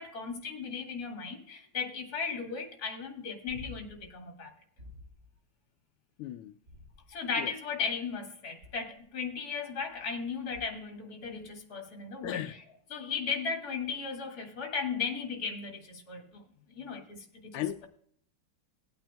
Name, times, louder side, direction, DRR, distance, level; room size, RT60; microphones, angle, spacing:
voice 1, 0.0-4.5 7.1-12.4 12.9-16.4 16.7-17.9, left 5 dB, 50° left, 2.3 m, -36 dB
sound 1, 3.5-4.1 4.8-5.3 6.6-7.4 8.6-9.0 10.5-10.9 13.3-13.4, left 1 dB, 30° right, 4.6 m, -50 dB
voice 2, 6.2-6.5 7.4-7.5 12.2-12.5 16.8-16.9 17.5-17.9, left 12 dB, 90° left, 1.5 m, -36 dB
19.0 x 8.9 x 2.3 m
omnidirectional pair, 2.3 m